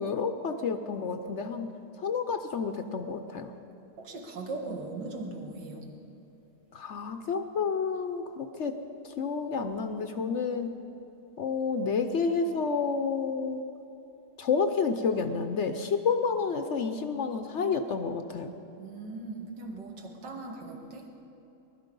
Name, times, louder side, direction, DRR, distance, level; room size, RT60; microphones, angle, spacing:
voice 1, 0.0-1.7 2.0-3.5 6.7-8.8 9.0-10.7 11.4-13.6 14.4-18.6, left 5 dB, 60° left, 7 dB, 0.7 m, -30 dB
voice 2, 4.0-5.9 18.8-21.1, right 3 dB, 85° right, 1 dB, 2.3 m, -39 dB
20.0 x 12.5 x 5.3 m, 2.9 s
omnidirectional pair, 1.9 m